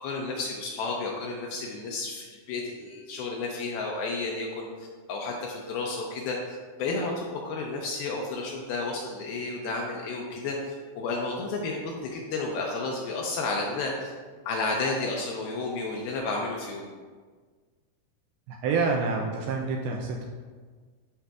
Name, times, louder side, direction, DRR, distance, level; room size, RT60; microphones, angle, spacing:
voice 1, 0.0-14.1 14.5-16.9, left 3 dB, 80° left, -1 dB, 2.3 m, -32 dB
voice 2, 18.5-20.3, right 4 dB, 80° right, 1 dB, 2.3 m, -27 dB
11.5 x 5.0 x 2.3 m, 1.5 s
omnidirectional pair, 4.8 m